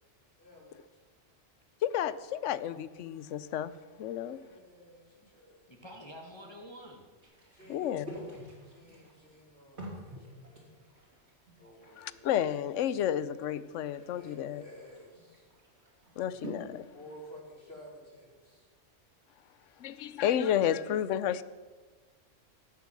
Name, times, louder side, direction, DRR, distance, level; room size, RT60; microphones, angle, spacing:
voice 1, 0.4-0.8 4.2-5.6 6.4-6.6 7.5-8.3 8.6-10.8 11.6-12.2 14.1-15.5 16.9-18.7, equal, 50° left, 5.0 m, -53 dB
voice 2, 1.8-3.7 4.0-4.4 7.7-8.0 12.0-14.6 16.2-16.8 19.8-21.4, left 10 dB, 75° left, 1.0 m, -31 dB
voice 3, 5.7-7.0, equal, 20° left, 1.4 m, -47 dB
sound 1, 7.2-17.3, equal, 60° right, 3.7 m, -49 dB
17.0 x 7.1 x 7.5 m
omnidirectional pair, 1.3 m